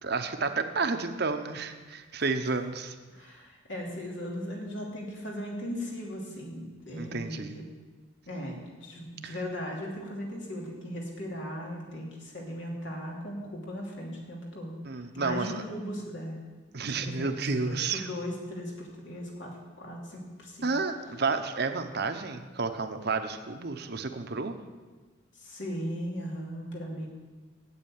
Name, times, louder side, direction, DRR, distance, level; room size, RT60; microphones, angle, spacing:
voice 1, 0.0-3.0 7.0-7.5 9.2-9.4 14.8-15.6 16.7-18.1 20.6-24.6, right 4 dB, 55° right, 7 dB, 0.9 m, -31 dB
voice 2, 3.1-7.6 8.3-16.4 17.0-20.7 25.3-27.1, equal, 65° left, -2 dB, 2.9 m, -38 dB
8.6 x 8.2 x 9.1 m, 1.3 s
head